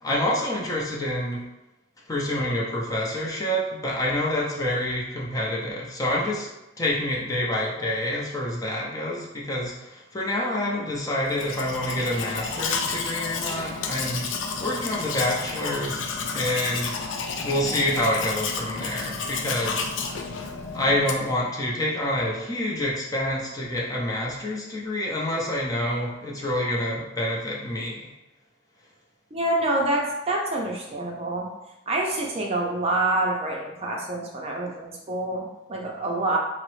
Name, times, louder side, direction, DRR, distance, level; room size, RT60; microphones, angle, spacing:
voice 1, 0.0-1.4 2.1-6.5 6.8-14.3 14.6-16.0 16.3-16.9 17.4-19.8 20.7-28.1, left 1 dB, 20° left, -3 dB, 0.5 m, -27 dB
Domestic sounds home sounds, 11.3-21.4, left 5 dB, 75° left, 0.4 m, -31 dB
voice 2, 29.3-31.5 31.9-36.4, right 2 dB, 30° right, -1 dB, 0.5 m, -27 dB
3.7 x 2.0 x 3.0 m, 0.99 s
head